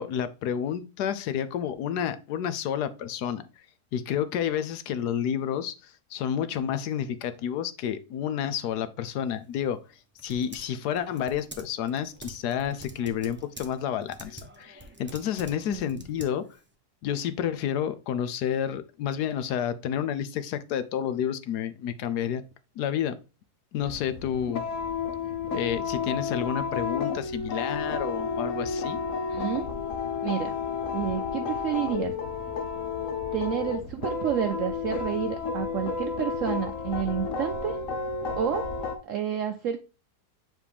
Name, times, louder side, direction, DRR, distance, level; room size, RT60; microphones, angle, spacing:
voice 1, 0.0-3.4 3.9-9.8 10.2-16.4 17.0-22.4 22.8-23.2 23.7-24.6 25.5-29.0, left 9 dB, 80° left, 1.3 m, -30 dB
Typing, 9.3-16.7, right 1 dB, 10° right, 0.6 m, -48 dB
voice 2, 15.7-16.0 29.3-29.8 30.2-30.6 30.9-32.1 33.3-37.8 38.4-38.7 39.0-39.9, right 9 dB, 65° right, 0.8 m, -30 dB
sound 1, 23.8-39.0, left 5 dB, 60° left, 1.1 m, -31 dB
7.3 x 4.1 x 3.3 m
omnidirectional pair, 1.7 m